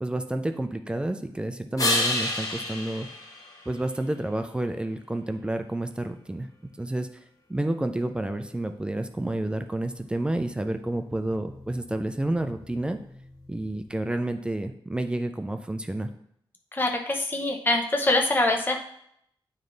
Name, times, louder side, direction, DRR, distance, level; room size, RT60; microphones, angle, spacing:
voice 1, 0.0-3.1 3.7-6.5 6.8-7.1 7.5-13.0 13.5-16.1, right 1 dB, 10° right, 7 dB, 0.4 m, -30 dB
sound 1, 1.8-4.3 10.1-14.1, left 2 dB, 40° left, 1.2 m, -33 dB
voice 2, 16.7-18.8, left 2 dB, 20° left, 2 dB, 0.8 m, -24 dB
8.8 x 3.2 x 3.9 m, 0.70 s
wide cardioid pair, 155°, 9 cm